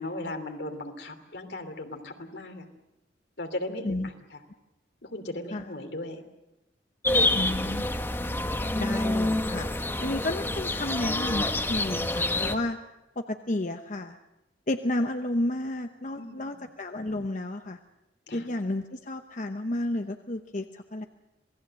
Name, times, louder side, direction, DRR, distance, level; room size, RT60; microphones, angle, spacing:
voice 1, 0.0-2.7 3.4-4.4 5.0-6.2 7.1-7.5 16.2-16.6 18.3-18.5, left 1 dB, 80° left, 6 dB, 2.9 m, -37 dB
sound 1, 7.0-12.6, left 2 dB, 15° left, 1.2 m, -27 dB
voice 2, 7.3-7.8 8.7-9.7 10.0-12.8 13.2-14.2 14.7-17.8 18.3-21.1, left 1 dB, 45° left, 7 dB, 0.9 m, -31 dB
27.0 x 19.0 x 7.7 m, 0.94 s
head